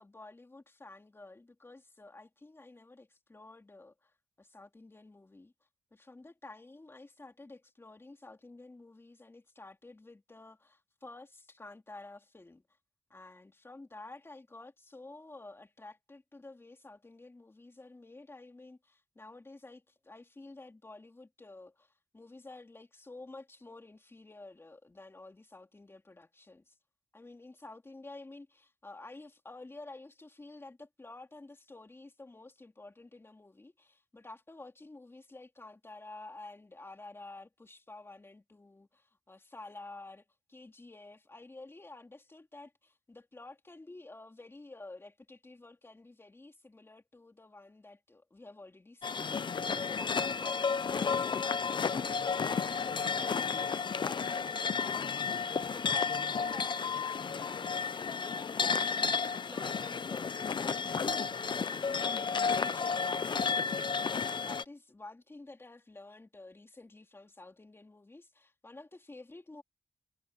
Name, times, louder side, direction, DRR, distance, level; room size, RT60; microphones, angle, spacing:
voice 1, 0.0-4.1 4.4-5.5 5.9-12.6 13.1-26.7 27.1-63.9 64.2-69.6, left 2 dB, 25° left, 3.2 m, -51 dB
sound 1, 49.0-64.6, left 5 dB, 50° left, 0.7 m, -32 dB
wide cardioid pair, 95°, 10 cm